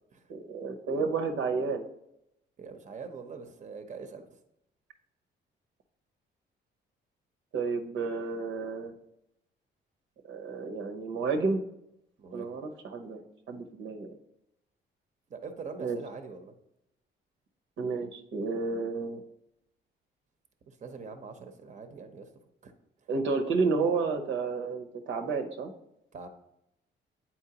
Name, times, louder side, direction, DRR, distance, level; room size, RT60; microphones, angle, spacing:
voice 1, 0.3-1.8 7.5-8.9 10.2-11.6 12.3-14.1 15.8-16.0 17.8-19.2 23.1-25.7, right 4 dB, 70° right, 4 dB, 0.8 m, -31 dB
voice 2, 2.6-4.3 12.2-12.5 15.3-16.5 20.7-22.3 22.6-22.7 26.1-26.3, right 5 dB, 35° right, 7 dB, 0.7 m, -43 dB
8.7 x 4.3 x 2.8 m, 0.82 s
cardioid pair, 90°, 20 cm